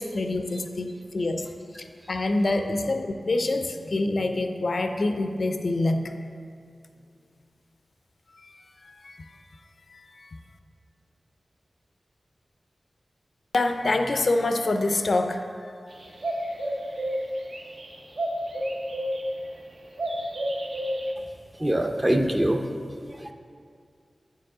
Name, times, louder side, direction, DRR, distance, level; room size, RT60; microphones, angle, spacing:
voice 1, 0.0-1.5 2.1-6.1 8.4-9.4 9.9-10.3 13.5-15.7, left 2 dB, 65° left, 6 dB, 0.4 m, -26 dB
sound 1, 15.9-19.6 20.0-21.1, equal, 70° right, 0.7 m, -30 dB
voice 2, 21.6-22.6 23.0-23.3, right 1 dB, 15° right, 5 dB, 0.5 m, -24 dB
8.7 x 4.6 x 3.7 m, 2.3 s
wide cardioid pair, 75°, 0 cm